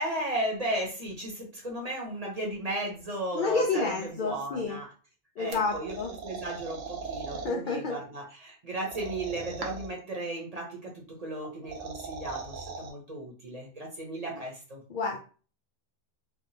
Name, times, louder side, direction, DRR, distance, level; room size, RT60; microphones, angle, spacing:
voice 1, 0.0-4.9 5.4-6.0 6.2-14.8, right 1 dB, 35° right, -1 dB, 0.8 m, -35 dB
voice 2, 3.3-4.8 5.4-6.1 7.3-8.0 14.9-15.2, left 3 dB, 65° left, 2 dB, 0.5 m, -29 dB
sound 1, 5.5-7.5 8.8-10.0 11.4-12.9, right 4 dB, 75° right, 1.1 m, -39 dB
3.4 x 2.2 x 2.7 m, 0.37 s
omnidirectional pair, 1.3 m